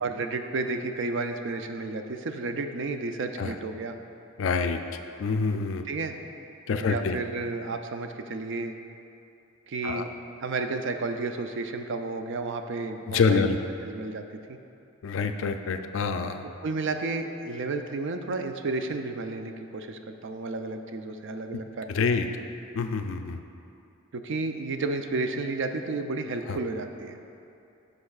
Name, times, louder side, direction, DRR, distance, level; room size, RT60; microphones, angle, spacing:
voice 1, 0.0-4.0 5.9-6.2 6.8-8.8 9.7-10.1 10.4-13.6 13.8-14.2 14.5-14.6 16.6-22.1 24.1-27.2, right 3 dB, 60° right, 6 dB, 0.4 m, -32 dB
voice 2, 4.4-4.8 5.2-5.9 6.7-7.2 9.8-10.1 13.1-13.6 15.0-16.4 21.9-22.3 22.8-23.4 26.5-26.6, left 5 dB, 60° left, 7 dB, 0.4 m, -26 dB
9.7 x 6.5 x 2.4 m, 2.7 s
head